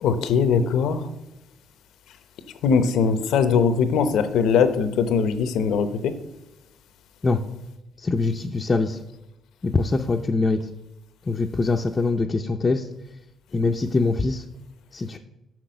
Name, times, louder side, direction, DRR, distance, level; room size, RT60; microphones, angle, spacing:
voice 1, 0.0-1.1 2.6-6.1, left 6 dB, 80° left, 11 dB, 0.8 m, -21 dB
voice 2, 8.0-9.0 9.6-10.6 11.3-12.9 13.5-14.4 14.9-15.2, left 3 dB, 30° left, 2 dB, 0.5 m, -23 dB
6.3 x 6.1 x 6.3 m, 0.94 s
cardioid pair, 90°, 0 cm